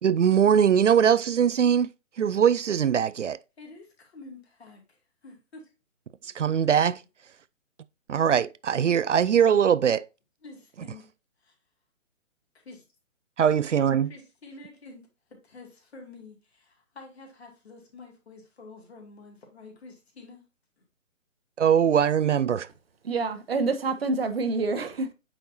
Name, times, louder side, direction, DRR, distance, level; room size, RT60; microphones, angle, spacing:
voice 1, 0.0-3.4 6.2-7.0 8.1-10.1 13.4-14.1 21.6-22.7, right 8 dB, 65° right, 0.5 m, -21 dB
voice 2, 3.6-5.7 6.2-6.3 10.4-11.1 11.4-11.5 12.5-12.8 14.1-20.4, left 3 dB, 50° left, 2.5 m, -48 dB
voice 3, 23.0-25.1, right 3 dB, 50° right, 0.9 m, -27 dB
8.7 x 4.4 x 2.7 m
figure-of-eight pair, 135°, 40 cm